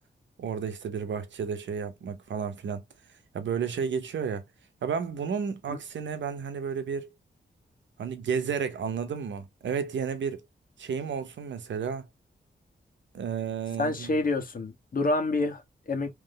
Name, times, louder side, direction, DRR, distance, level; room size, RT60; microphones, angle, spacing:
voice 1, 0.4-2.8 3.3-4.4 4.8-7.1 8.0-10.4 10.8-12.1 13.1-14.1, right 6 dB, 85° right, 0.8 m, -32 dB
voice 2, 13.8-16.1, left 2 dB, 50° left, 1.4 m, -28 dB
3.8 x 3.1 x 3.2 m
wide cardioid pair, 120°, 19 cm